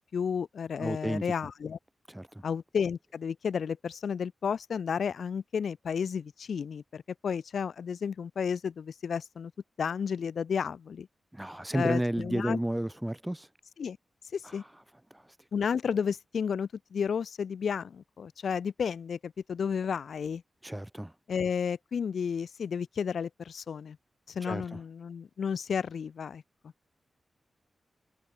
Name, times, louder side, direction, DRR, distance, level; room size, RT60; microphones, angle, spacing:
voice 1, 0.1-1.8 2.4-9.5 9.8-11.1 11.7-12.6 13.8-14.0 14.3-14.6 15.5-20.4 21.3-24.0 24.3-26.4, left 6 dB, 80° left, 2.3 m, -32 dB
voice 2, 0.8-1.2 2.1-2.3 11.3-13.5 20.6-21.1 24.5-24.8, right 1 dB, 10° right, 3.4 m, -31 dB
wide cardioid pair, 130°, 0 cm